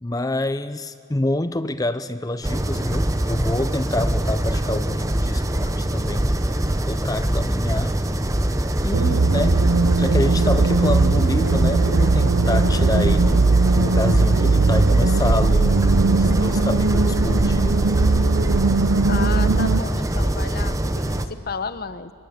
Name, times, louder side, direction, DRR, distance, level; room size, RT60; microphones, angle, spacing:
voice 1, 0.0-6.3 6.9-8.0 8.8-9.6 10.0-13.4 13.7-17.8, left 2 dB, 15° left, 13 dB, 0.5 m, -27 dB
sound 1, 2.4-21.3, right 1 dB, 15° right, 0.9 m, -23 dB
sound 2, 8.9-19.8, right 3 dB, 60° right, 0.6 m, -19 dB
voice 2, 19.1-22.1, left 5 dB, 45° left, 13 dB, 0.9 m, -32 dB
26.5 x 24.0 x 8.7 m, 2.7 s
head